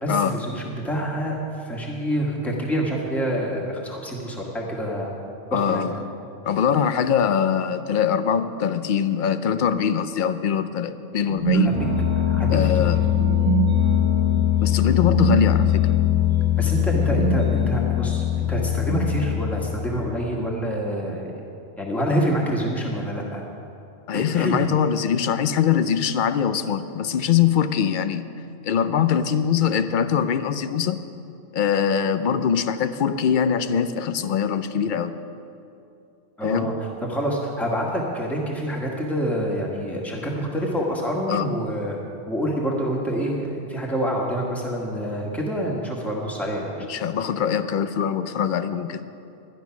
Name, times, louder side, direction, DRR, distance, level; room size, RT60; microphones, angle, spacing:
voice 1, 0.0-5.1 5.5-5.9 11.5-11.9 12.3-13.0 16.6-21.3 21.8-23.4 24.1-24.6 36.4-42.0 42.3-46.9, equal, ahead, -3 dB, 1.7 m, -27 dB
voice 2, 5.5-6.0 6.4-11.7 12.5-13.0 14.6-15.9 24.1-28.2 28.6-31.0 31.5-35.2 36.4-36.7 41.3-41.5 46.9-49.0, left 8 dB, 55° left, 11 dB, 0.6 m, -22 dB
sound 1, 11.2-20.0, left 6 dB, 25° right, 1.1 m, -21 dB
11.5 x 11.5 x 5.9 m, 2.6 s
omnidirectional pair, 1.2 m